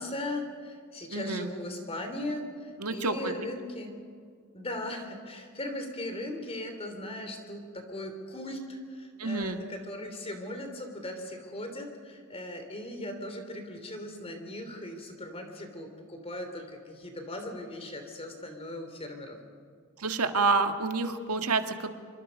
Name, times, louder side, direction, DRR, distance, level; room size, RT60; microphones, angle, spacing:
voice 1, 0.0-3.9 4.5-19.4, left 1 dB, 25° left, 5 dB, 3.1 m, -38 dB
voice 2, 1.1-1.5 2.8-3.3 9.2-9.6 20.0-21.9, right 3 dB, 90° right, 7 dB, 1.7 m, -28 dB
26.0 x 24.5 x 5.3 m, 2.2 s
head